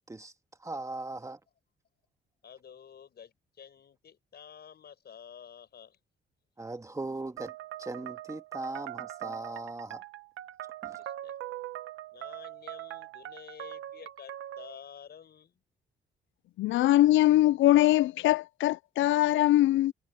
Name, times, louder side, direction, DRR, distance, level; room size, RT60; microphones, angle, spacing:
voice 1, 0.6-1.4 6.6-7.5 7.8-10.0 10.8-11.0, right 2 dB, 15° right, 1.9 m, -39 dB
voice 2, 2.4-6.0 11.0-11.3 12.1-15.6, left 8 dB, 55° left, 6.3 m, -50 dB
sound 1, 7.4-14.8, right 13 dB, 85° right, 1.0 m, -42 dB
voice 3, 16.6-19.9, left 15 dB, 75° left, 0.5 m, -22 dB
cardioid pair, 90°, 20 cm